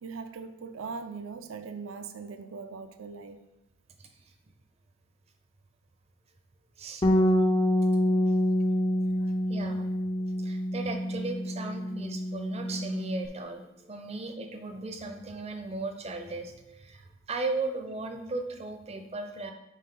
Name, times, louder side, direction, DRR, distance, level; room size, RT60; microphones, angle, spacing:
voice 1, 0.0-3.4, right 5 dB, 75° right, 9 dB, 0.5 m, -40 dB
voice 2, 4.0-4.3 6.8-7.0 9.2-9.9 10.4-19.5, right 3 dB, 30° right, 6 dB, 0.6 m, -37 dB
Bass guitar, 7.0-13.3, equal, 20° left, 0.4 m, -27 dB
5.4 x 5.0 x 3.8 m, 0.93 s
head